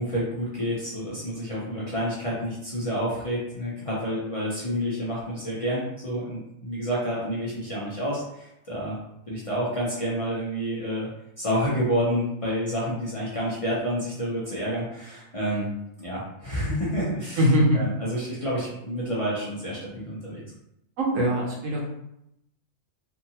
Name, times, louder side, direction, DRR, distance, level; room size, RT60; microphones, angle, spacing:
voice 1, 0.0-9.0 9.3-11.1 11.4-15.7 16.0-17.4 17.7-20.4, equal, 35° left, -7 dB, 0.6 m, -29 dB
voice 2, 17.4-17.8 21.0-21.8, equal, 80° right, -2 dB, 1.1 m, -21 dB
2.6 x 2.6 x 2.8 m, 0.81 s
omnidirectional pair, 1.3 m